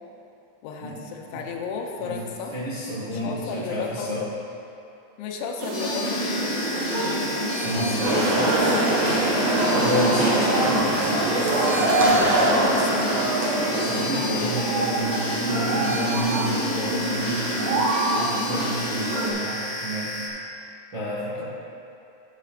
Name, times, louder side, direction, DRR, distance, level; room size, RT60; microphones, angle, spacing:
voice 1, 0.6-2.6 3.0-4.2 5.2-7.4 12.4-13.1 21.4-21.5, left 5 dB, 85° left, 2 dB, 3.1 m, -34 dB
voice 2, 2.5-4.2 7.6-8.6 9.7-11.0 13.6-20.2 20.9-21.4, equal, 90° right, -10 dB, 1.0 m, -30 dB
sound 1, 5.6-19.3, right 1 dB, 70° right, 3.1 m, -27 dB
sound 2, 5.7-20.3, left 2 dB, 65° left, 1.6 m, -32 dB
sound 3, 8.0-14.5, right 1 dB, 55° right, 1.9 m, -23 dB
17.5 x 6.0 x 2.5 m, 2.8 s
omnidirectional pair, 5.2 m